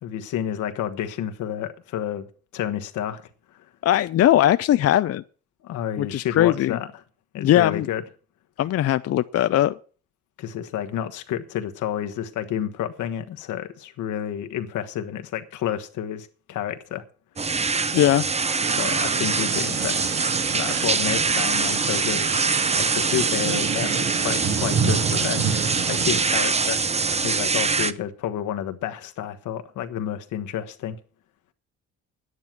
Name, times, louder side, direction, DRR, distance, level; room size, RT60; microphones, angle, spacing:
voice 1, 0.0-2.3 2.5-3.3 3.5-3.7 5.6-6.9 7.3-8.0 10.4-17.0 18.7-20.1 20.5-26.8 27.2-31.0, left 10 dB, 80° left, 1.3 m, -30 dB
voice 2, 3.8-5.2 6.0-6.8 7.4-7.9 8.6-9.8 17.9-18.3, left 12 dB, 55° left, 0.5 m, -19 dB
sound 1, 17.4-27.9, right 4 dB, 20° right, 0.7 m, -24 dB
sound 2, 18.6-26.3, right 6 dB, 55° right, 1.7 m, -29 dB
10.5 x 9.7 x 5.9 m
cardioid pair, 90°, 30 cm